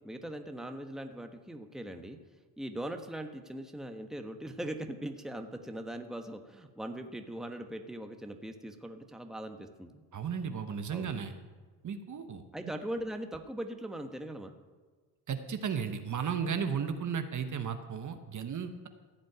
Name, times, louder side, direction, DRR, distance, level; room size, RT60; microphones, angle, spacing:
voice 1, 0.0-2.2 2.6-10.0 10.9-11.1 12.5-14.5, right 1 dB, ahead, 5 dB, 1.2 m, -40 dB
voice 2, 10.1-11.3 11.8-12.4 15.3-18.9, right 7 dB, 45° right, 8 dB, 1.1 m, -34 dB
15.0 x 5.1 x 9.3 m, 1.5 s
cardioid pair, 90°, 40 cm